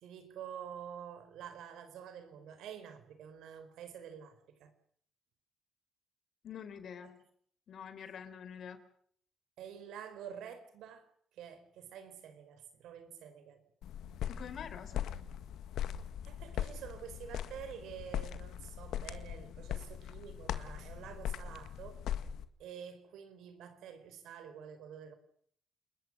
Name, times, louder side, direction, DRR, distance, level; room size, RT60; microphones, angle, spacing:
voice 1, 0.0-4.7 9.6-11.1 11.3-13.6 16.2-22.0 22.6-25.2, right 8 dB, 85° right, 4.5 m, -48 dB
voice 2, 6.4-7.2 7.7-8.8 14.3-15.1, left 7 dB, 65° left, 4.2 m, -46 dB
sound 1, 13.8-22.5, left 10 dB, 80° left, 1.8 m, -40 dB
29.5 x 21.0 x 6.3 m
cardioid pair, 90°, 0 cm